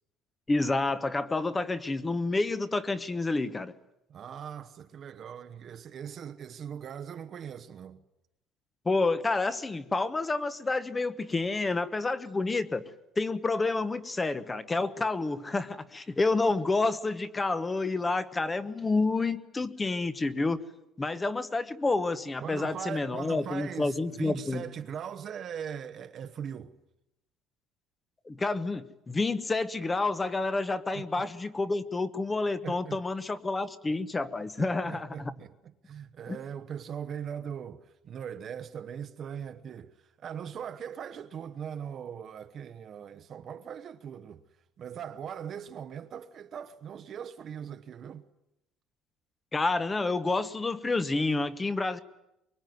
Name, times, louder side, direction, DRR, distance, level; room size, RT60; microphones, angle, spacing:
voice 1, 0.5-3.7 8.8-12.8 13.2-20.6 21.0-24.6 28.3-35.3 36.3-36.4 49.5-52.0, left 3 dB, 15° left, 1.1 m, -29 dB
voice 2, 4.1-8.0 22.4-26.7 30.9-31.2 32.6-33.0 34.6-44.4 44.8-48.3, right 8 dB, 35° right, 1.0 m, -40 dB
24.5 x 23.0 x 9.4 m
cardioid pair, 165°, 0 cm